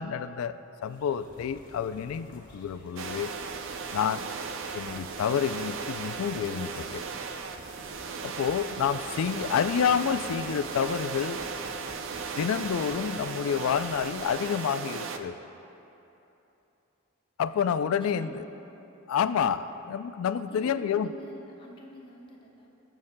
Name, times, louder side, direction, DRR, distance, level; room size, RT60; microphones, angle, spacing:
voice 1, 0.0-3.3 3.9-4.3 4.7-7.0 8.2-11.4 12.4-15.4 17.4-18.4 19.1-21.1, left 7 dB, 85° left, 13 dB, 0.3 m, -29 dB
sound 1, 0.8-14.5, left 1 dB, 45° left, 1.4 m, -51 dB
sound 2, 3.0-15.2, right 5 dB, 65° right, 0.5 m, -36 dB
voice 2, 17.8-18.5 20.5-22.7, equal, 25° left, -2 dB, 1.0 m, -48 dB
19.5 x 7.2 x 2.2 m, 3.0 s
head